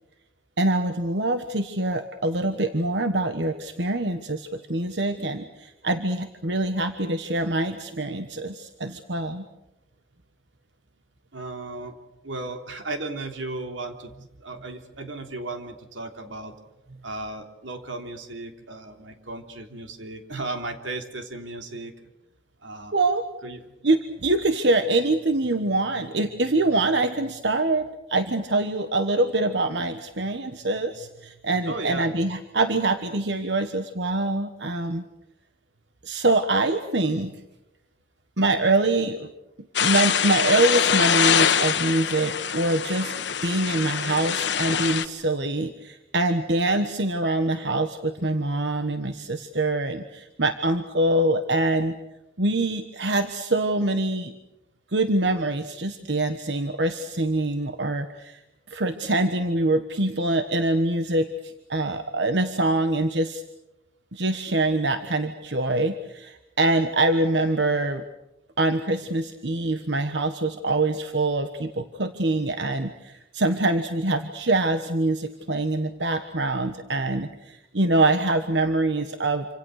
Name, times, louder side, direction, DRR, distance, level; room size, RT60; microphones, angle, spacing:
voice 1, 0.6-9.4 22.9-23.2 23.8-35.1 36.0-37.3 38.4-39.3 39.8-43.1 43.4-51.9 52.4-54.3 54.9-58.4 58.7-63.4 64.1-68.0 68.6-79.5, right 2 dB, 70° right, 8 dB, 1.4 m, -24 dB
voice 2, 11.3-11.9 12.2-14.1 14.4-16.5 17.0-21.9 22.6-22.9 23.4-23.7 31.6-32.1, right 2 dB, 90° right, 5 dB, 3.3 m, -35 dB
sound 1, 39.8-45.1, left 8 dB, 70° left, 1.3 m, -24 dB
27.5 x 26.5 x 6.6 m, 0.93 s
head